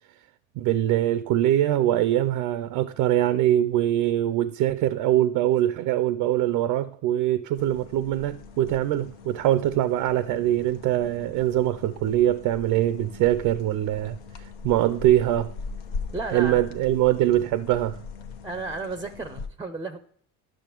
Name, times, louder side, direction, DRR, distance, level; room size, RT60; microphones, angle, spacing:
voice 1, 0.6-14.2 14.6-15.5 16.3-18.0, right 13 dB, 65° right, 0.5 m, -23 dB
sound 1, 7.6-19.5, left 4 dB, 75° left, 0.9 m, -40 dB
voice 2, 16.1-16.7 18.4-20.0, right 3 dB, 10° right, 0.5 m, -33 dB
10.5 x 6.4 x 3.0 m
hypercardioid pair, 70°, 37 cm